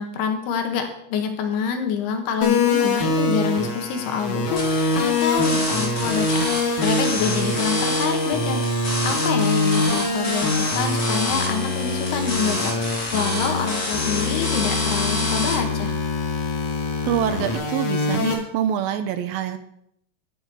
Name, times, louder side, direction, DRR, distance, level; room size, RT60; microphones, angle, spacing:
voice 1, 0.0-6.4 6.8-8.6 9.0-15.9, left 6 dB, 90° left, 6 dB, 3.4 m, -26 dB
sound 1, 2.4-18.3, left 3 dB, 55° left, 3.0 m, -24 dB
sound 2, 4.6-15.6, left 1 dB, 25° left, 3.8 m, -28 dB
voice 2, 17.0-19.6, right 9 dB, 80° right, 10 dB, 2.4 m, -25 dB
11.0 x 7.3 x 6.9 m, 0.74 s
omnidirectional pair, 4.5 m